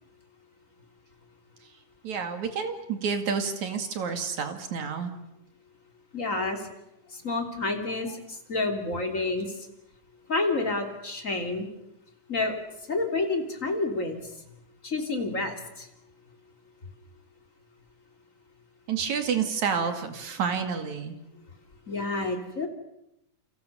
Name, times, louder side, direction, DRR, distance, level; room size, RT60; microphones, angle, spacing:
voice 1, 2.0-5.1 18.9-21.2, right 6 dB, 60° right, 7 dB, 3.5 m, -29 dB
voice 2, 6.1-6.6 7.1-9.5 10.3-11.7 12.3-12.5 12.9-14.2 14.8-15.9 21.9-22.7, left 3 dB, 25° left, 5 dB, 3.3 m, -29 dB
29.0 x 26.5 x 6.9 m, 0.82 s
omnidirectional pair, 3.8 m